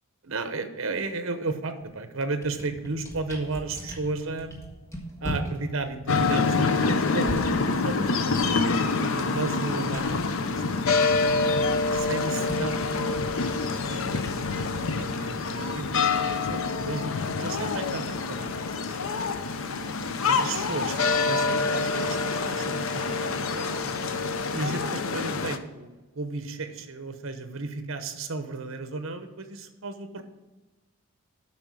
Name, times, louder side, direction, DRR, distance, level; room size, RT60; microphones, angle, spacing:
voice 1, 0.2-4.7 5.2-10.9 11.9-18.5 20.3-23.8 24.5-30.2, right 3 dB, 65° right, 9 dB, 0.9 m, -34 dB
sound 1, 1.8-2.0 2.3-11.2 11.4-17.4, equal, 15° left, 1.5 m, -40 dB
sound 2, 6.1-25.6, left 4 dB, 65° left, 0.6 m, -26 dB
8.7 x 5.8 x 6.2 m, 1.2 s
head